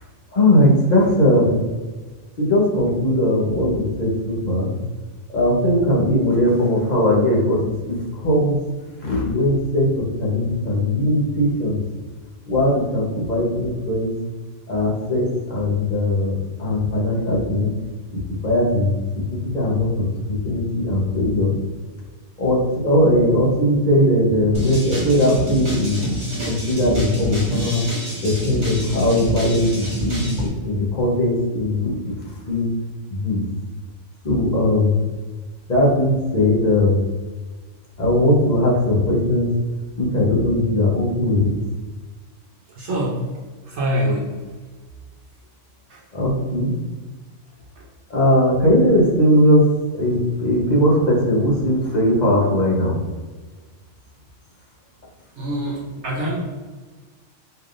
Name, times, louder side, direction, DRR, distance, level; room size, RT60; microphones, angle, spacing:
voice 1, 0.3-1.6 2.4-4.7 5.3-8.6 9.0-11.8 12.5-14.1 14.7-17.7 18.4-21.5 22.4-26.0 26.5-27.8 28.2-31.9 32.5-32.7 33.1-33.5 34.2-35.0 35.7-37.0 38.0-39.5 40.0-41.5 46.1-46.7 48.1-49.6 49.9-53.0, left 1 dB, 40° left, -4 dB, 1.0 m, -19 dB
sound 1, 24.5-30.5, equal, 40° right, 1.7 m, -27 dB
voice 2, 42.7-43.3 43.6-44.4 45.9-46.3 47.8-47.9 55.4-56.4, equal, 70° right, -4 dB, 1.0 m, -25 dB
4.5 x 3.4 x 2.5 m, 1.4 s
omnidirectional pair, 1.2 m